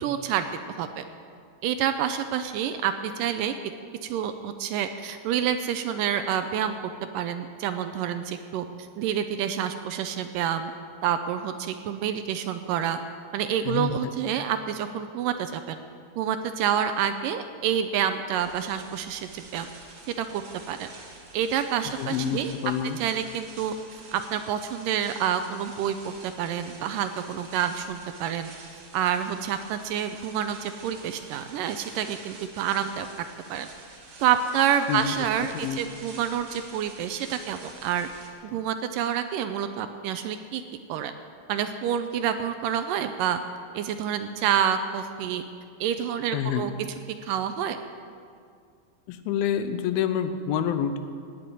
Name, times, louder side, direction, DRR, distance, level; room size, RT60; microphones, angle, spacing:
voice 1, 0.0-0.5 0.8-1.0 1.6-3.5 4.0-6.8 7.1-10.7 11.0-13.0 13.3-15.8 16.2-19.7 20.2-20.4 20.7-20.9 21.3-22.5 23.0-23.7 24.1-28.5 28.9-33.1 33.5-33.7 34.2-38.1 38.4-40.6 40.9-41.1 41.5-43.4 43.7-45.4 45.8-46.7 47.2-47.8, right 9 dB, 80° right, 9 dB, 2.1 m, -28 dB
sound 1, 18.4-38.3, right 3 dB, 45° right, 2.5 m, -47 dB
voice 2, 22.0-23.0 34.9-35.1 35.5-35.8 46.3-46.7 49.1-51.0, left 9 dB, 85° left, 10 dB, 2.6 m, -27 dB
18.0 x 6.9 x 9.6 m, 2.2 s
omnidirectional pair, 4.2 m